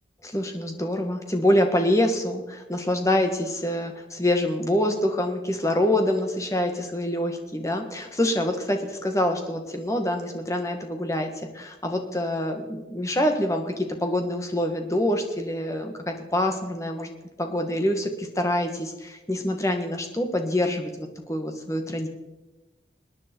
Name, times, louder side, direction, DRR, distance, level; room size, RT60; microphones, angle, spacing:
voice 1, 0.2-17.1 17.4-22.1, left 1 dB, 15° left, 4 dB, 1.6 m, -26 dB
26.5 x 9.7 x 4.6 m, 1.1 s
head